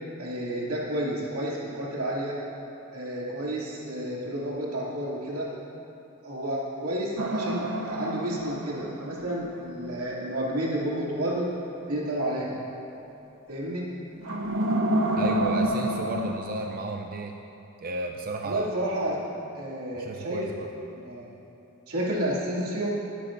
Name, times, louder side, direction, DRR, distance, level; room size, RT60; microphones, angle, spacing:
voice 1, 0.2-2.4 2.9-5.5 6.2-11.5 11.9-12.5 13.5-13.8 18.4-19.2 19.5-20.4 20.9-21.3 21.9-23.0, right 1 dB, 85° right, -5 dB, 2.5 m, -30 dB
sound 1, 7.2-9.5 14.2-16.4, right 1 dB, 65° right, 1.0 m, -28 dB
voice 2, 15.2-17.3 17.8-18.7 20.0-20.7, right 2 dB, 40° right, 2 dB, 0.5 m, -33 dB
20.0 x 10.0 x 2.6 m, 2.9 s
head